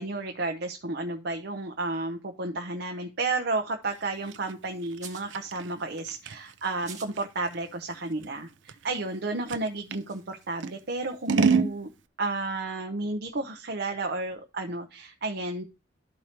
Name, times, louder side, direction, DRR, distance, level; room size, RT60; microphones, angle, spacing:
voice 1, 0.0-11.9 12.2-15.6, right 2 dB, 60° right, 4 dB, 0.8 m, -32 dB
Scissors, 3.9-10.1 10.6-11.8, right 5 dB, 90° right, 0.5 m, -30 dB
sound 1, 4.9-5.4 6.7-7.2 7.5-7.7 9.1-9.2 9.7-11.6, right 7 dB, 40° right, 1.7 m, -48 dB
12.5 x 4.7 x 2.9 m, 0.27 s
head